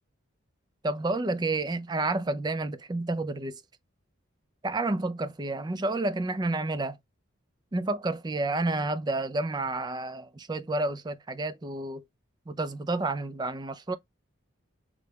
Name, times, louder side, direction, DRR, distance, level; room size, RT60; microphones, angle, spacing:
voice 1, 0.8-3.6 4.6-7.0 7.7-12.0 12.5-14.0, right 2 dB, 20° right, 0.3 m, -30 dB
5.1 x 2.2 x 3.3 m
head